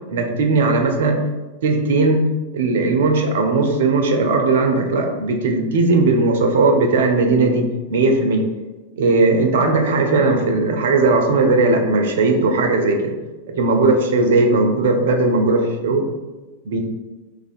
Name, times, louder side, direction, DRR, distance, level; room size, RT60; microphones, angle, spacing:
voice 1, 0.1-1.2 1.6-2.2 2.5-8.4 9.0-13.0 13.6-16.1 16.7-16.8, right 3 dB, 60° right, 4 dB, 0.4 m, -17 dB
3.1 x 2.4 x 2.5 m, 1.2 s
figure-of-eight pair, 90°, 0 cm